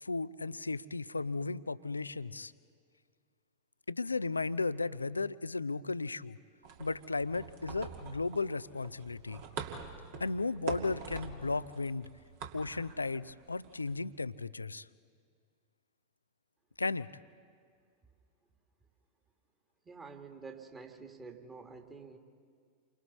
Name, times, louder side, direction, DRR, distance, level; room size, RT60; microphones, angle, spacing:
voice 1, 0.0-2.5 3.9-6.4 6.8-9.4 10.2-12.1 12.5-14.9 16.8-17.1, left 3 dB, 80° left, 18 dB, 0.5 m, -35 dB
sound 1, 6.6-14.0, right 5 dB, 50° right, 2.4 m, -45 dB
voice 2, 19.9-22.2, right 4 dB, 15° right, 3 dB, 2.2 m, -48 dB
29.5 x 24.0 x 4.2 m, 2.1 s
figure-of-eight pair, 90°, 0 cm